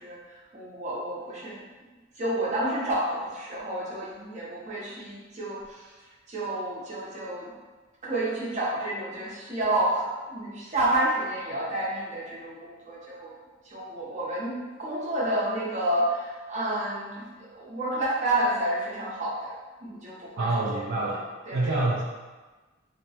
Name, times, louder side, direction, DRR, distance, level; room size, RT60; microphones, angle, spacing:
voice 1, 0.0-1.6 2.1-7.5 8.0-13.3 13.6-19.5 19.8-20.8 21.5-21.8, right 1 dB, 35° right, -7 dB, 0.8 m, -30 dB
voice 2, 20.4-21.2 21.5-22.0, right 2 dB, 55° right, -5 dB, 0.3 m, -26 dB
2.8 x 2.1 x 2.8 m, 1.3 s
head